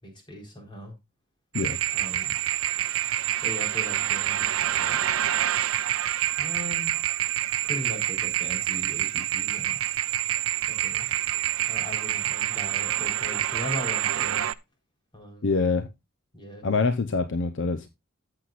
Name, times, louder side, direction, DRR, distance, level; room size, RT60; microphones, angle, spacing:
voice 1, 0.0-1.0 1.9-2.4 3.4-5.0 6.4-6.9 7.6-9.8 10.7-11.1 11.7-14.5 15.1-15.5 16.3-16.6, equal, 25° left, 4.1 m, -39 dB
sound 1, 1.5-14.5, right 12 dB, 70° right, 0.5 m, -27 dB
voice 2, 15.4-15.9 16.6-17.9, left 4 dB, 60° left, 0.7 m, -25 dB
14.5 x 7.8 x 2.4 m
head